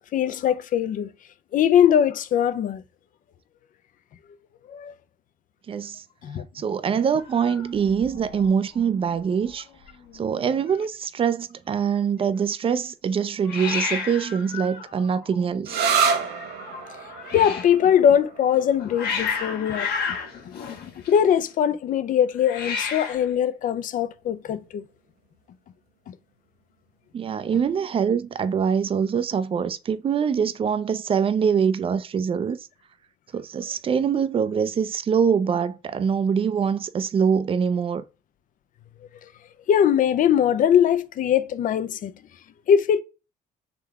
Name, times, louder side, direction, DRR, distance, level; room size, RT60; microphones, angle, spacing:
voice 1, 0.1-1.1 1.5-2.8 4.7-4.9 6.2-6.5 17.3-19.9 20.4-24.8 26.1-26.2 39.7-42.1 42.7-43.0, left 9 dB, 50° left, 0.5 m, -21 dB
voice 2, 5.7-6.0 6.5-9.7 10.1-15.8 27.1-32.6 33.3-38.0, right 7 dB, 35° right, 0.5 m, -24 dB
Hiss, 7.2-8.5 8.8-9.2 9.5-9.6 9.8-10.5 13.4-17.8 18.5-21.5 22.4-23.3, left 5 dB, 70° left, 1.2 m, -33 dB
sound 1, 15.6-23.0, right 6 dB, 80° right, 0.8 m, -30 dB
3.7 x 3.3 x 3.5 m
cardioid pair, 110°, 17 cm